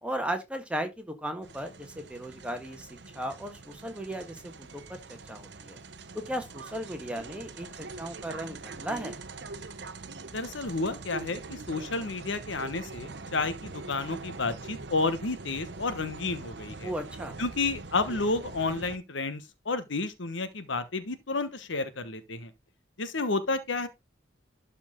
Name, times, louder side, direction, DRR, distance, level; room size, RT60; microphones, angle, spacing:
voice 1, 0.0-2.9 3.1-5.0 5.3-5.8 6.1-9.2 16.8-17.3, right 1 dB, 5° right, 1.5 m, -36 dB
sound 1, 1.4-19.0, right 3 dB, 60° right, 0.8 m, -43 dB
voice 2, 10.3-16.9 17.4-22.5 23.0-23.9, left 3 dB, 85° left, 1.1 m, -31 dB
12.0 x 4.3 x 3.7 m
head